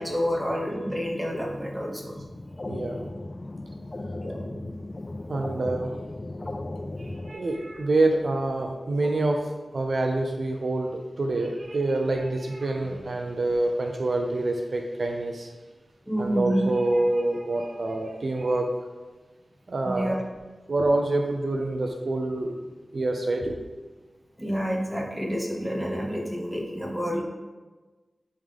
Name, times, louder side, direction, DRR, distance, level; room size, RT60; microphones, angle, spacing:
voice 1, 0.0-2.3 2.6-2.7 4.2-4.6 12.9-13.0 16.1-16.6 19.8-20.2 24.4-27.2, equal, 5° right, -2 dB, 1.5 m, -29 dB
sound 1, 2.1-7.3, left 2 dB, 35° left, 0.4 m, -36 dB
voice 2, 2.7-3.1 5.3-5.9 7.0-15.5 16.2-18.7 19.7-20.2 20.7-22.5 22.9-23.6, right 2 dB, 65° right, 3 dB, 0.6 m, -26 dB
10.5 x 3.7 x 3.5 m, 1.3 s
wide cardioid pair, 70°, 0 cm